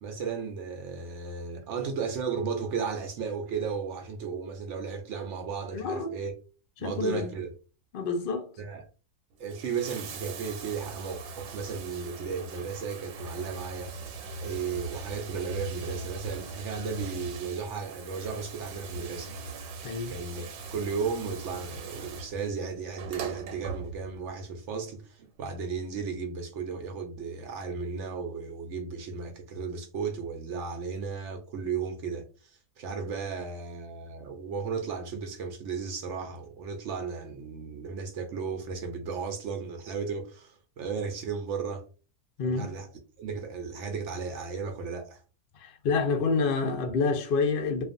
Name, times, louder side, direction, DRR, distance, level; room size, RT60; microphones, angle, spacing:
voice 1, 0.0-6.3 6.8-7.5 8.6-8.8 9.4-13.9 14.4-19.3 20.1-20.4 20.7-41.9 42.4-42.9 43.2-45.2, right 5 dB, 70° right, 0.7 m, -35 dB
voice 2, 5.7-6.1 6.8-7.2 7.9-8.5 19.8-20.1 42.4-42.7 45.5-47.8, left 4 dB, 70° left, 0.5 m, -28 dB
Bathtub (filling or washing), 9.3-24.3 25.4-25.5, right 4 dB, 90° right, 1.2 m, -41 dB
2.4 x 2.4 x 2.5 m
omnidirectional pair, 1.7 m